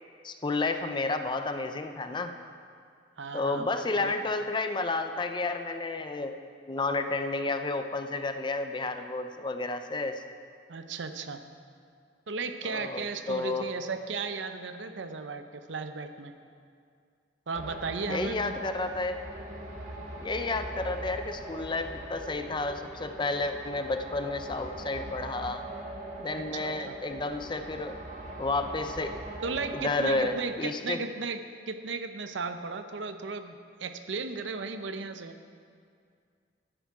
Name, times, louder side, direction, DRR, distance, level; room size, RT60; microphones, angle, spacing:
voice 1, 0.2-2.4 3.3-6.4 6.7-10.2 12.6-13.7 18.1-19.2 20.2-25.6 26.2-27.9 28.4-29.2 29.7-31.0, left 3 dB, 25° left, 8 dB, 0.5 m, -31 dB
voice 2, 3.2-4.1 10.7-11.4 12.3-16.4 17.5-18.6 26.3-27.0 29.4-35.4, right 4 dB, 75° right, 8 dB, 0.7 m, -35 dB
sound 1, 17.5-30.3, right 1 dB, 40° right, 1.6 m, -41 dB
12.5 x 9.8 x 4.8 m, 2.3 s
head